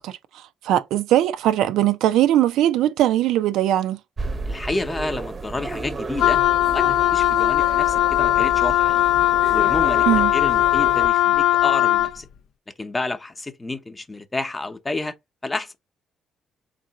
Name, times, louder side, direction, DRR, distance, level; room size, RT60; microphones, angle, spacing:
voice 1, 0.0-4.0 10.1-10.3, right 12 dB, 90° right, 0.4 m, -20 dB
sound 1, 4.2-11.1, right 3 dB, 35° right, 0.7 m, -32 dB
voice 2, 4.5-6.4 6.7-9.0 9.5-10.0 10.3-12.3 12.8-15.1 15.4-15.8, left 2 dB, 20° left, 0.7 m, -30 dB
Wind instrument woodwind instrument, 6.2-12.2, left 13 dB, 70° left, 0.4 m, -19 dB
3.6 x 2.6 x 4.0 m
cardioid pair, 90°, 0 cm